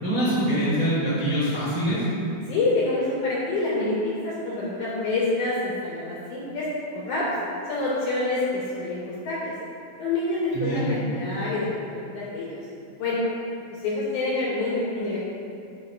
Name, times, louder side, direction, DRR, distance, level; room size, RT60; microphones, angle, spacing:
voice 1, 0.0-2.0 10.5-10.9, right 1 dB, 75° right, -10 dB, 0.7 m, -24 dB
voice 2, 2.4-6.7 6.9-7.3 7.7-9.6 10.0-12.6 13.0-13.3 13.7-15.2, left 2 dB, 75° left, -6 dB, 1.8 m, -27 dB
8.1 x 3.1 x 5.5 m, 2.5 s
omnidirectional pair, 4.4 m